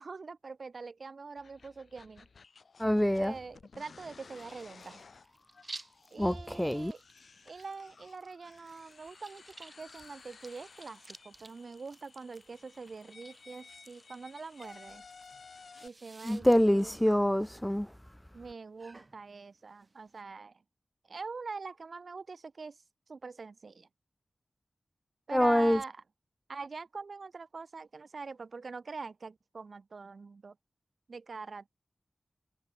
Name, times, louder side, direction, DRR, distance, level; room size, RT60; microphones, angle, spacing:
voice 1, 0.0-2.3 3.2-5.0 6.1-7.0 7.5-15.0 15.8-17.0 18.3-20.6 21.1-22.8 23.1-23.9 25.3-26.0 26.5-30.6 31.1-31.7, right 4 dB, 70° right, 1.1 m, -44 dB
sound 1, 1.4-15.9, left 5 dB, 80° left, 7.6 m, -56 dB
voice 2, 2.8-3.3 6.2-6.9 16.2-17.9 25.3-25.8, equal, 5° left, 0.4 m, -26 dB
sound 2, 4.3-20.2, right 2 dB, 35° right, 2.1 m, -55 dB
wide cardioid pair, 85°, 0 cm